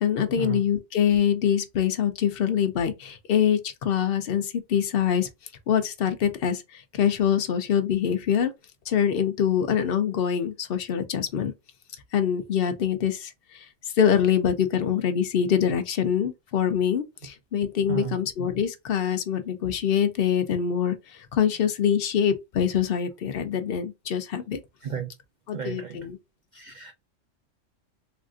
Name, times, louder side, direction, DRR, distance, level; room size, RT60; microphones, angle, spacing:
voice 1, 0.0-5.3 5.7-8.5 8.9-11.5 12.1-13.7 14.0-21.0 21.3-24.6 25.5-26.2, left 8 dB, 55° left, 0.7 m, -24 dB
voice 2, 25.5-26.0 26.5-26.9, right 8 dB, 80° right, 0.4 m, -33 dB
3.5 x 2.4 x 2.4 m
omnidirectional pair, 1.3 m